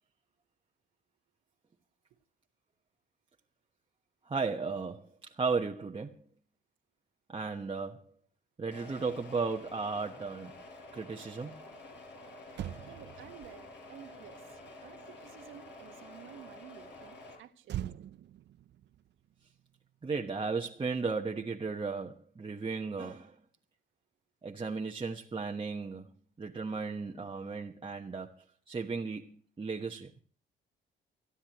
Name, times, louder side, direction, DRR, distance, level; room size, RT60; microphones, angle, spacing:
voice 1, 4.3-6.2 7.3-8.0 8.6-10.5 10.9-11.6 20.0-23.3 24.4-26.1 26.4-30.1, right 4 dB, 25° right, 1.2 m, -35 dB
sound 1, 8.7-17.3, left 2 dB, 60° left, 6.5 m, -50 dB
Motor vehicle (road), 12.1-12.2 12.5-16.0 17.6-20.2 20.5-20.8, right 12 dB, 60° right, 0.6 m, -45 dB
voice 2, 12.8-14.4 14.8-17.9, right 10 dB, 80° right, 1.5 m, -53 dB
28.5 x 9.9 x 3.0 m
cardioid pair, 90°, 20 cm